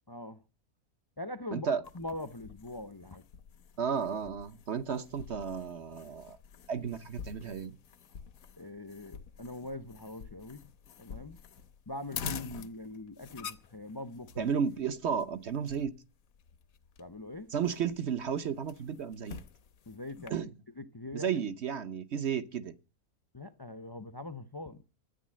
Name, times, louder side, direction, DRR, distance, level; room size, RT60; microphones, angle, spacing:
voice 1, 0.1-0.4 1.2-3.2 8.6-10.7 11.0-11.4 11.9-14.5 17.0-17.5 19.9-20.5 20.8-21.4 23.3-24.8, left 2 dB, 25° left, 0.5 m, -42 dB
sound 1, 1.8-20.3, left 7 dB, 75° left, 1.3 m, -48 dB
voice 2, 3.8-6.4 6.7-7.8 14.4-15.9 17.5-19.4 20.3-20.5 21.1-22.7, right 7 dB, 55° right, 1.0 m, -33 dB
13.0 x 9.3 x 7.5 m
omnidirectional pair, 1.5 m